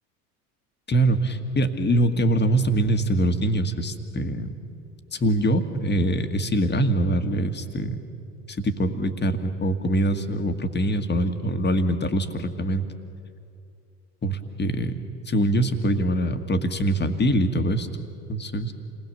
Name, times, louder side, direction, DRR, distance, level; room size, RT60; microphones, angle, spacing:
voice 1, 0.9-4.5 5.1-8.0 8.5-12.9 14.2-15.0 15.3-17.9 18.3-18.7, right 1 dB, 20° left, 7 dB, 1.8 m, -23 dB
28.5 x 20.0 x 6.9 m, 2.5 s
figure-of-eight pair, 65°, 47 cm